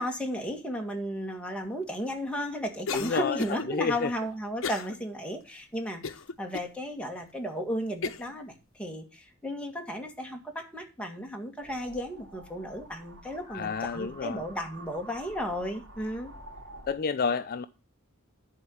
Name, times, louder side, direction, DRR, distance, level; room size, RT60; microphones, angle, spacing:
voice 1, 0.0-6.0 6.4-16.3, equal, 5° left, 1.9 m, -34 dB
Cough, 2.9-3.7 4.6-5.0 5.4-5.5 6.0-6.7 7.3-7.4 8.0-8.3, left 5 dB, 65° left, 0.8 m, -35 dB
voice 2, 2.9-3.4 3.7-4.1 13.5-14.4 16.9-17.6, left 5 dB, 45° left, 0.5 m, -30 dB
sound 1, 11.6-16.9, right 2 dB, 65° right, 3.2 m, -49 dB
11.0 x 4.6 x 7.1 m
head